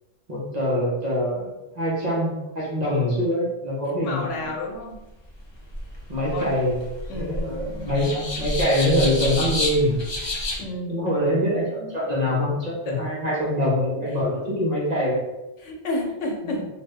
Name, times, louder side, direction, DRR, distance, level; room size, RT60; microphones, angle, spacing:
voice 1, 0.3-4.5 6.1-6.8 7.1-10.0 10.9-15.2 16.4-16.6, left 1 dB, 40° right, -6 dB, 1.0 m, -24 dB
voice 2, 4.0-5.0 6.3-6.5 7.1-7.8 10.6-11.0 12.9-13.0 15.6-16.7, left 2 dB, 90° left, 1 dB, 1.0 m, -30 dB
sound 1, 5.3-10.6, left 1 dB, 35° left, 0.4 m, -30 dB
2.6 x 2.6 x 3.2 m, 0.99 s
omnidirectional pair, 1.2 m